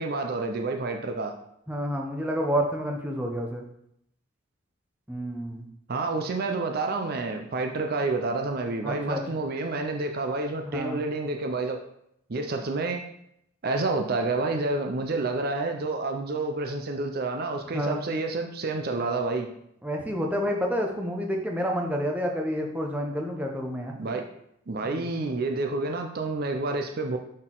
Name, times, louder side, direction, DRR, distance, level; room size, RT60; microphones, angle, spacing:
voice 1, 0.0-1.3 5.9-11.8 12.3-13.0 13.6-19.5 24.0-24.2 24.7-27.2, right 3 dB, 45° right, 4 dB, 0.5 m, -29 dB
voice 2, 1.7-3.6 5.1-5.7 8.8-9.4 10.7-11.0 17.7-18.0 19.8-23.9 24.8-25.1, equal, 5° right, 1 dB, 0.7 m, -29 dB
6.2 x 3.9 x 3.8 m, 0.75 s
head